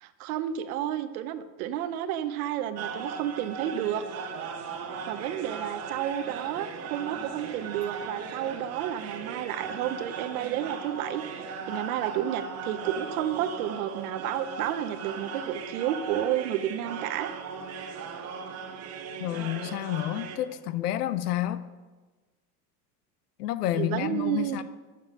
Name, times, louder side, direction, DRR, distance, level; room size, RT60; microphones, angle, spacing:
voice 1, 0.0-4.0 5.1-17.3 23.7-24.6, right 11 dB, 70° right, 0.8 m, -31 dB
sound 1, 2.8-20.4, right 5 dB, 35° right, 0.9 m, -38 dB
voice 2, 19.2-21.6 23.4-24.6, left 13 dB, 85° left, 0.7 m, -29 dB
7.3 x 7.0 x 5.4 m
supercardioid pair, 125°, 45 cm